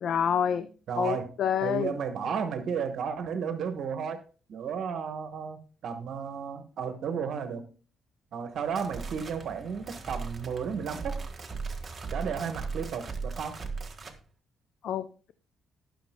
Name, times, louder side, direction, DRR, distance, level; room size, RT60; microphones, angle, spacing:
voice 1, 0.0-0.7 1.0-1.9 14.8-15.0, left 8 dB, 70° left, 11 dB, 0.6 m, -27 dB
voice 2, 0.9-1.3 1.6-4.2 4.5-7.7 8.3-11.2 12.1-13.7, right 6 dB, 65° right, 8 dB, 1.2 m, -33 dB
sound 1, 8.5-14.2, right 4 dB, 30° right, 1.6 m, -38 dB
19.0 x 6.7 x 2.2 m, 0.37 s
cardioid pair, 90°, 0 cm